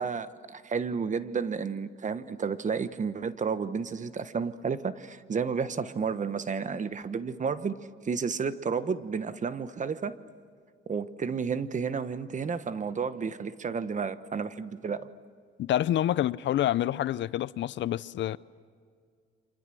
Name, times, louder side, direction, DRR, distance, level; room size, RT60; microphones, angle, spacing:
voice 1, 0.0-10.2 10.9-15.1, right 5 dB, 40° right, 1.2 m, -31 dB
voice 2, 15.6-18.4, left 12 dB, 65° left, 0.6 m, -27 dB
29.0 x 26.0 x 7.8 m
cardioid pair, 90°, 20 cm